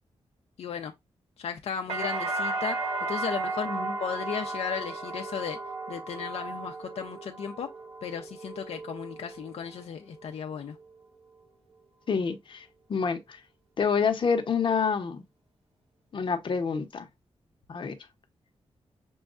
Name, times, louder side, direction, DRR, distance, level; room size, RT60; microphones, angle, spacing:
voice 1, 0.6-0.9 1.4-3.7 4.0-5.6 5.9-7.7 8.0-10.8, left 7 dB, 80° left, 0.5 m, -35 dB
sound 1, 1.9-9.8 10.2-10.8, right 3 dB, 75° right, 1.7 m, -35 dB
voice 2, 12.1-13.4 13.8-15.3 16.1-17.1 17.7-17.9, left 6 dB, 50° left, 0.8 m, -28 dB
6.2 x 2.3 x 2.4 m
wide cardioid pair, 130°, 11 cm